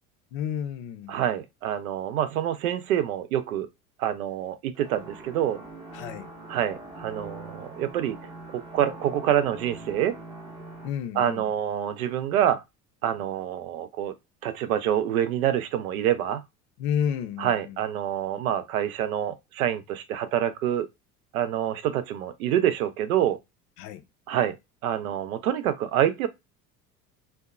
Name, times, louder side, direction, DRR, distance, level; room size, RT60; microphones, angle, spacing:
voice 1, 0.3-1.1 5.9-6.3 10.8-11.5 16.8-17.8 23.8-24.0, left 8 dB, 45° left, 0.5 m, -31 dB
voice 2, 1.1-3.7 4.0-5.6 6.5-8.2 8.5-10.2 11.1-12.6 13.0-14.1 14.4-16.4 17.4-20.9 21.3-23.4 24.3-24.6 24.8-26.3, right 10 dB, 65° right, 0.5 m, -26 dB
sound 1, 4.8-10.9, right 2 dB, 10° right, 0.7 m, -43 dB
2.6 x 2.1 x 2.3 m
figure-of-eight pair, 65°, 46 cm